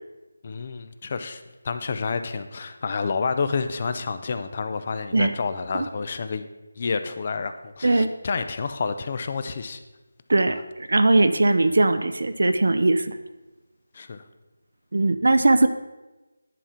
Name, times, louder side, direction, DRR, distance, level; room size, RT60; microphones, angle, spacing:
voice 1, 0.4-6.4 6.8-9.8 10.5-10.6 13.9-14.2, left 5 dB, 35° left, 10 dB, 0.5 m, -29 dB
voice 2, 10.3-13.2 14.9-15.7, right 2 dB, 70° right, 10 dB, 0.5 m, -20 dB
10.0 x 3.6 x 5.7 m, 1.1 s
figure-of-eight pair, 170°, 0 cm